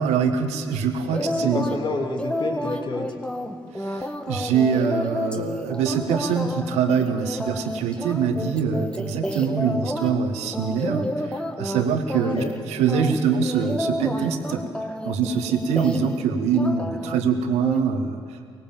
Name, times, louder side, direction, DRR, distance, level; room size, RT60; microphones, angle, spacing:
voice 1, 0.0-1.7 3.8-14.6 15.0-18.5, right 6 dB, 70° right, 6 dB, 1.6 m, -24 dB
voice 2, 1.1-3.1 12.3-12.5, left 2 dB, 45° left, 1 dB, 2.9 m, -29 dB
sound 1, 1.1-1.8 2.2-10.1 10.5-11.8 12.1-12.6 12.9-16.2 16.5-17.2 17.6-17.8, left 1 dB, 10° left, 1.8 m, -30 dB
24.0 x 19.0 x 7.3 m, 2.1 s
hypercardioid pair, 40°, 12 cm